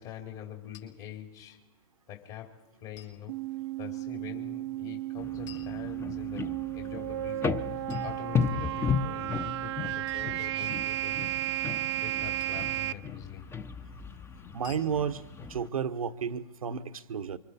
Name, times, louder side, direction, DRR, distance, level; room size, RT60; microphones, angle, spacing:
voice 1, 0.0-1.7 2.1-11.4 12.0-13.5, left 10 dB, 45° left, 2 dB, 2.9 m, -45 dB
sound 1, 0.7-0.9 3.0-3.2 5.5-6.4 7.9-8.8 10.1-10.4 12.4-12.8 14.6-14.9, left 10 dB, 75° left, 6.1 m, -53 dB
sound 2, 3.3-12.9, right 15 dB, 55° right, 0.7 m, -34 dB
sound 3, 5.2-15.7, left 6 dB, 15° left, 0.8 m, -35 dB
voice 2, 14.5-17.4, right 7 dB, 90° right, 11 dB, 1.2 m, -32 dB
29.0 x 25.0 x 4.3 m, 1.1 s
hypercardioid pair, 130°, 17 cm